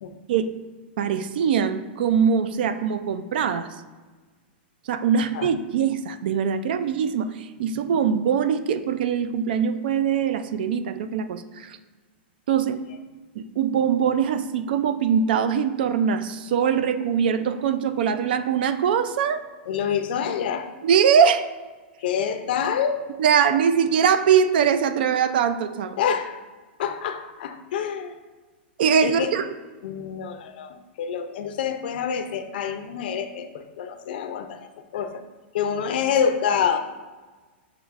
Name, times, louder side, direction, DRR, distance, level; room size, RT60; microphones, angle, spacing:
voice 1, 1.0-3.8 4.9-11.8 12.5-12.8 13.4-19.4 20.8-21.5 23.2-26.0 28.8-29.4, right 7 dB, 60° right, 11 dB, 0.3 m, -22 dB
voice 2, 19.7-20.7 22.0-23.1 26.0-26.4 26.8-28.2 29.0-29.3 29.8-35.2 35.5-36.8, left 7 dB, 60° left, 8 dB, 0.4 m, -27 dB
6.6 x 3.0 x 2.5 m, 1.3 s
supercardioid pair, 165°, 6 cm